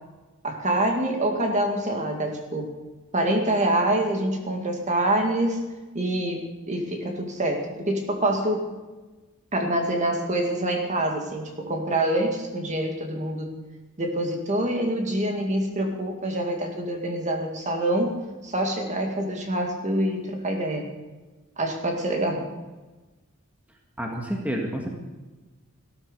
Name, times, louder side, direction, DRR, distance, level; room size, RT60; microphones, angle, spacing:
voice 1, 0.4-2.7 3.1-5.6 5.9-8.7 9.5-13.5 14.0-18.1 18.4-20.9 21.6-22.5, right 1 dB, 35° right, 3 dB, 2.1 m, -26 dB
voice 2, 24.0-24.9, equal, 5° right, 0 dB, 1.8 m, -29 dB
15.5 x 13.5 x 5.5 m, 1.2 s
head